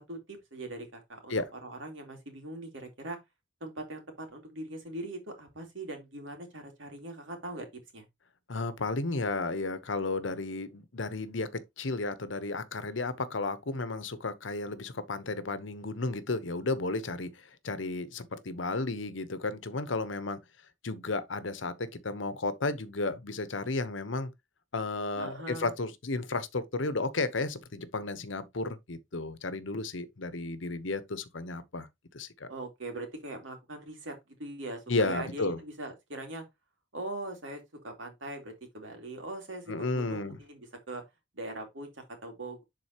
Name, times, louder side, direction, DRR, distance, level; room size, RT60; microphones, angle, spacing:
voice 1, 0.0-3.2 3.6-7.7 7.9-8.0 25.2-25.7 32.5-36.4 36.9-41.0 41.3-42.6, right 2 dB, 75° right, 2.6 m, -41 dB
voice 2, 8.5-20.4 20.8-24.3 24.7-31.9 32.1-32.5 34.9-35.6 39.7-40.4, left 3 dB, 75° left, 1.0 m, -33 dB
11.0 x 4.1 x 2.9 m
head